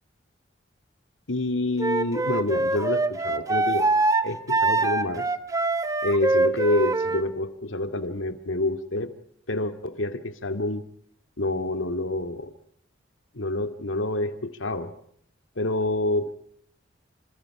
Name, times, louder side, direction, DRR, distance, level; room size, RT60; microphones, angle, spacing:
voice 1, 1.3-3.9 4.2-5.3 6.0-9.1 9.5-10.8 11.4-12.5 13.3-14.9 15.6-16.3, left 2 dB, 85° left, 8 dB, 2.2 m, -27 dB
Wind instrument woodwind instrument, 1.8-7.2, right 2 dB, 20° right, 1.3 m, -24 dB
28.5 x 28.0 x 4.9 m, 0.68 s
head